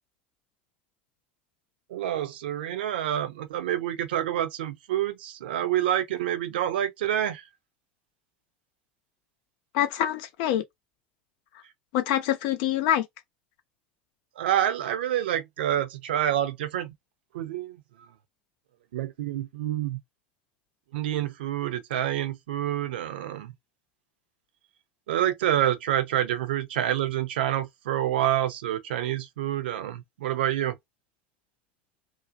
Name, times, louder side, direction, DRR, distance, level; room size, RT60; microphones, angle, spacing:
voice 1, 1.9-7.5 14.4-16.9 17.3-18.1 18.9-20.0 20.9-23.5 25.1-30.8, right 11 dB, 70° right, 0.5 m, -28 dB
voice 2, 9.7-10.6 11.9-13.1, left 11 dB, 60° left, 0.6 m, -25 dB
2.6 x 2.1 x 2.6 m
hypercardioid pair, 75°, 6 cm